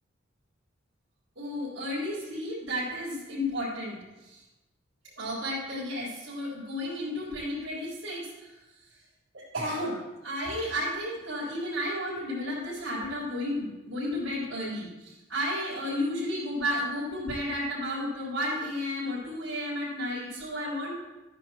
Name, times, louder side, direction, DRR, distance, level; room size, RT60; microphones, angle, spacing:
voice 1, 1.4-4.4 5.2-8.5 9.3-20.9, left 1 dB, 90° right, -10 dB, 4.3 m, -32 dB
14.0 x 9.7 x 3.1 m, 1.0 s
head